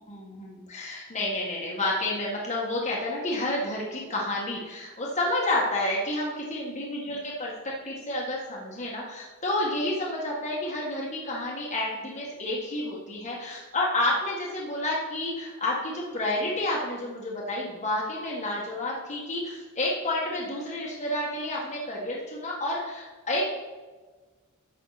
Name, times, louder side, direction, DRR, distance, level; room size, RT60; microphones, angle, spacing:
voice 1, 0.1-23.5, left 1 dB, 35° left, -4 dB, 1.6 m, -30 dB
11.5 x 7.5 x 4.1 m, 1.3 s
head